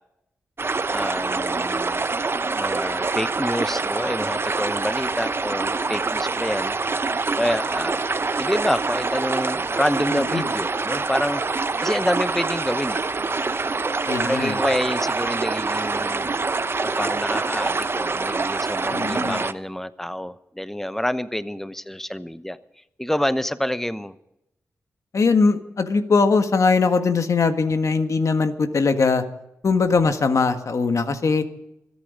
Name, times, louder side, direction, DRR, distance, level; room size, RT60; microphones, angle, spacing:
sound 1, 0.6-19.5, right 3 dB, 40° right, 0.8 m, -25 dB
voice 1, 0.9-2.1 2.5-6.8 7.4-8.0 8.4-11.4 11.8-13.0 14.2-16.3 16.8-22.6 23.0-24.1, equal, 5° left, 13 dB, 0.9 m, -27 dB
voice 2, 10.1-10.4 14.0-14.6 18.9-19.4 25.1-29.2 29.6-31.4, left 4 dB, 60° left, 8 dB, 1.6 m, -20 dB
25.5 x 8.8 x 5.2 m, 0.83 s
cardioid pair, 45°, 6 cm